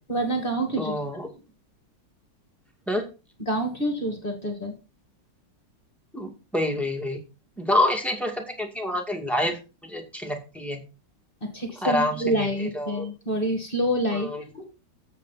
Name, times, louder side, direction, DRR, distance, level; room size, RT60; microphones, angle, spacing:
voice 1, 0.1-1.2 3.5-4.8 11.4-14.3, right 1 dB, 30° left, 4 dB, 2.0 m, -27 dB
voice 2, 0.8-1.3 2.9-3.1 6.1-7.2 7.6-9.6 9.9-10.8 11.8-12.5 12.7-13.1 14.1-14.6, left 1 dB, ahead, 2 dB, 2.1 m, -27 dB
8.4 x 8.2 x 4.1 m, 0.31 s
omnidirectional pair, 1.9 m